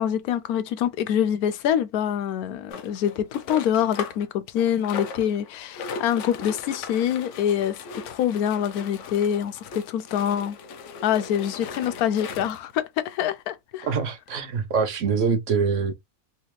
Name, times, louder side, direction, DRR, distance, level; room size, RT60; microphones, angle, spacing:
voice 1, 0.0-10.6 11.0-13.9, left 9 dB, 90° left, 1.1 m, -25 dB
sound 1, 2.7-4.3 4.6-12.7 13.4-13.5 13.7-13.8 14.3-14.4, left 5 dB, 65° left, 0.8 m, -38 dB
voice 2, 13.8-15.9, right 5 dB, 60° right, 1.0 m, -24 dB
3.4 x 2.9 x 2.9 m
omnidirectional pair, 1.6 m